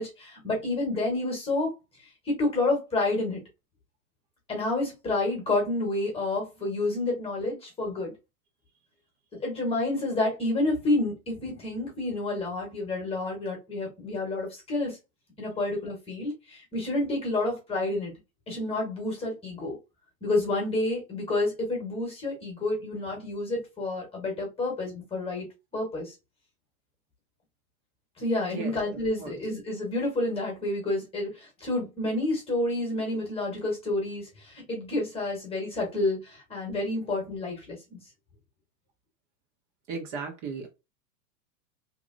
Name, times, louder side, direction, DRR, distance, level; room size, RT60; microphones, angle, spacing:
voice 1, 0.0-1.7 2.3-3.4 4.5-8.1 9.4-15.0 15.4-18.1 18.5-19.8 20.2-25.5 25.7-26.1 28.2-38.0, left 2 dB, 15° left, 1.2 m, -29 dB
voice 2, 39.9-40.7, right 4 dB, 50° right, 1.3 m, -36 dB
2.9 x 2.8 x 2.5 m
supercardioid pair, 145°, 43 cm